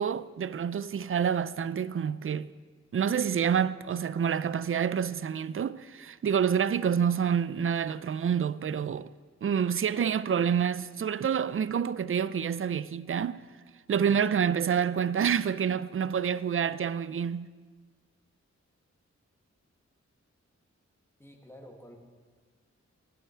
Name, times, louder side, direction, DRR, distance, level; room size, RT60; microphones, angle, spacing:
voice 1, 0.0-2.5 2.9-9.1 9.4-13.4 13.9-17.5, right 7 dB, 45° right, 0.4 m, -28 dB
voice 2, 21.2-22.0, equal, 10° left, 1.9 m, -49 dB
19.0 x 10.0 x 4.5 m
wide cardioid pair, 80°, 29 cm